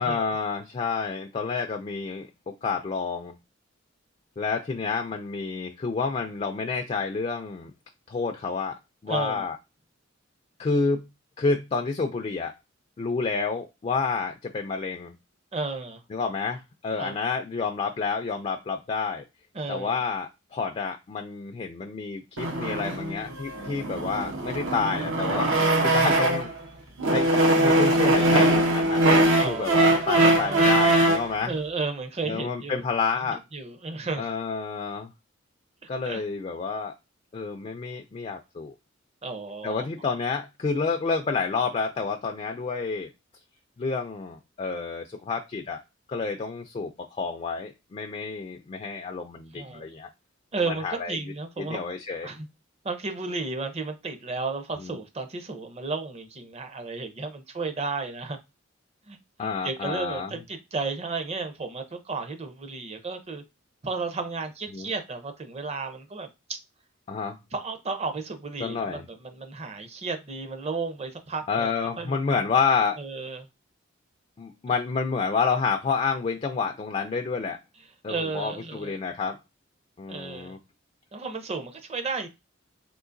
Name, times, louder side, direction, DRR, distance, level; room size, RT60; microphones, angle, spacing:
voice 1, 0.0-3.3 4.4-7.7 8.1-9.6 10.6-11.1 11.4-12.5 13.0-15.2 16.1-19.2 19.7-25.5 25.8-26.5 27.1-29.0 29.4-31.5 32.2-33.4 34.2-35.1 35.9-36.9 37.3-38.7 39.6-43.1 43.8-45.8 46.1-50.1 50.7-51.2 51.6-52.3 54.8-55.0 59.4-60.3 64.7-64.9 67.1-67.4 68.6-69.1 71.5-73.0 74.4-77.6 78.0-79.4 80.0-80.6, left 4 dB, 30° left, 0.3 m, -29 dB
voice 2, 9.1-9.5 15.5-16.0 17.0-17.2 19.5-20.0 29.4-30.7 31.4-32.8 33.3-34.3 36.0-36.2 39.2-39.9 49.5-49.9 50.5-51.8 52.2-52.5 52.8-58.4 59.1-63.4 63.8-66.6 67.5-71.7 72.0-72.4 73.0-73.5 78.1-79.0 80.1-80.6 81.1-82.3, right 3 dB, 35° right, 0.6 m, -33 dB
sound 1, 22.4-26.6 27.0-31.3, right 1 dB, 80° right, 0.8 m, -22 dB
3.8 x 2.5 x 2.5 m
head